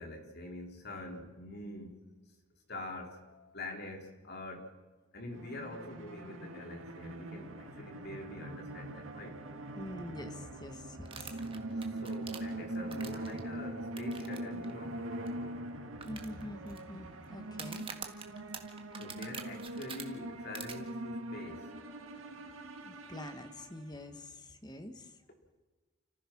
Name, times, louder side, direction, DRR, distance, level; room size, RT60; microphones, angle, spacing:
voice 1, 0.0-2.0 2.7-4.8 5.1-9.4 11.9-15.0 19.0-21.7, left 1 dB, 50° left, 2 dB, 3.9 m, -45 dB
sound 1, 5.3-24.1, right 1 dB, 75° right, 2.2 m, -42 dB
voice 2, 9.7-11.4 16.0-17.9 22.8-25.1, left 1 dB, 20° left, 7 dB, 1.6 m, -45 dB
sound 2, 11.1-13.4 14.0-14.4 14.6-14.7 15.3-15.4 16.0-16.8 17.5-20.0 20.5-20.7, right 6 dB, 25° right, 1.7 m, -45 dB
29.5 x 15.0 x 6.2 m, 1.3 s
head